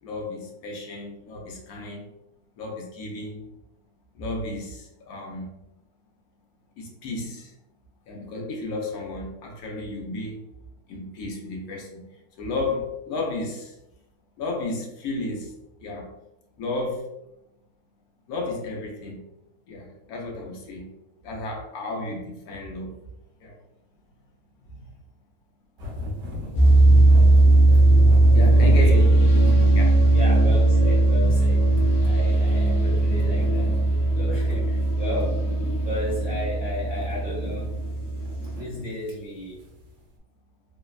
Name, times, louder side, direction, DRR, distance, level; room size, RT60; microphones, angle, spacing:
voice 1, 0.0-2.1 2.6-3.5 4.1-5.5 6.8-7.5 8.1-10.4 10.9-12.1 12.4-13.8 14.4-15.5 15.8-16.1 16.6-17.2 18.3-19.2 19.7-20.9 21.2-22.9 23.4-23.5 24.7-24.9 28.3-29.2 29.7-30.0, left 2 dB, 85° left, 0 dB, 1.2 m, -33 dB
sound 1, 25.8-40.1, left 1 dB, 65° right, 1.0 m, -38 dB
sound 2, 26.5-38.6, right 2 dB, 55° left, 0.8 m, -18 dB
voice 2, 28.5-29.1 30.1-31.7 32.0-33.8 34.2-35.4 35.8-37.7 38.5-39.6, left 1 dB, 10° right, -7 dB, 0.7 m, -34 dB
3.3 x 2.1 x 2.3 m, 0.90 s
omnidirectional pair, 1.5 m